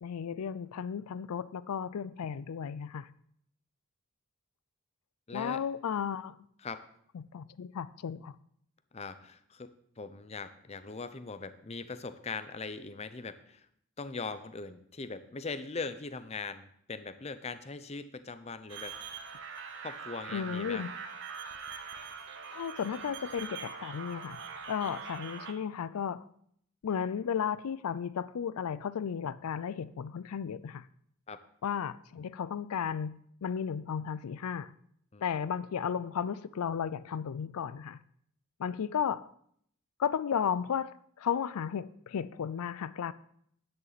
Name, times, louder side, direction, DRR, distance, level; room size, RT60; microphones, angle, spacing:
voice 1, 0.0-3.1 5.3-6.4 7.1-8.3 20.3-20.9 22.5-24.4 24.7-26.2 26.8-30.8 31.6-33.1 33.4-34.7 35.2-38.0 38.6-39.3 40.0-43.1, left 7 dB, 85° left, 0.4 m, -34 dB
voice 2, 5.3-5.6 6.6-6.8 8.9-13.7 14.0-19.0 19.8-20.8 31.3-31.4 35.1-35.2, left 4 dB, 30° left, 0.6 m, -41 dB
sound 1, 18.7-25.5, right 5 dB, 55° right, 1.0 m, -43 dB
11.0 x 9.5 x 4.1 m
head